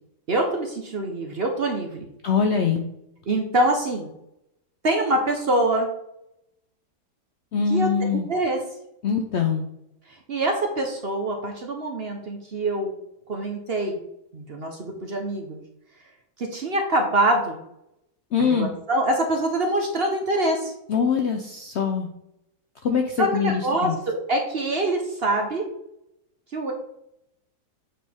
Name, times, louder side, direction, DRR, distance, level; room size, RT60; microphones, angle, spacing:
voice 1, 0.3-2.1 3.3-4.1 4.8-5.9 7.7-8.6 10.3-12.9 13.3-14.0 14.3-15.6 16.4-17.6 18.4-20.7 23.2-25.7 26.5-26.7, right 1 dB, 45° right, 2 dB, 0.9 m, -25 dB
voice 2, 2.2-2.8 7.5-8.3 9.0-9.6 18.3-18.7 20.9-22.1 22.8-24.0, left 6 dB, 60° left, 3 dB, 0.7 m, -23 dB
7.5 x 4.2 x 3.5 m, 0.81 s
omnidirectional pair, 1.8 m